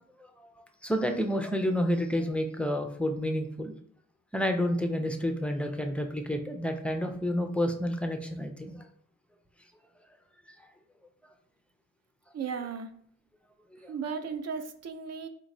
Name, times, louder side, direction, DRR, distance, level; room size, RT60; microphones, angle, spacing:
voice 1, 0.8-3.8 4.3-8.8 13.8-13.9, equal, 5° left, 5 dB, 0.4 m, -29 dB
voice 2, 12.3-12.9 13.9-15.3, right 6 dB, 50° right, 8 dB, 0.5 m, -35 dB
4.3 x 3.0 x 2.6 m, 0.64 s
cardioid pair, 125°, 33 cm